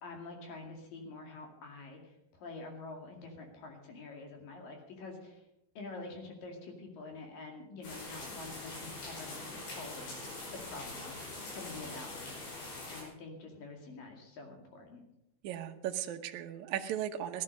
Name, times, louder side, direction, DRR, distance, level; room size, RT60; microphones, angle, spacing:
voice 1, 0.0-5.4 5.8-10.3 10.7-11.2 11.5-12.5 12.9-15.0, left 3 dB, 60° left, 2 dB, 3.9 m, -47 dB
sound 1, 7.8-13.0, left 2 dB, 80° left, 7.1 m, -43 dB
voice 2, 15.4-17.4, right 10 dB, 75° right, 4 dB, 1.8 m, -36 dB
16.5 x 12.0 x 5.5 m, 0.83 s
omnidirectional pair, 4.7 m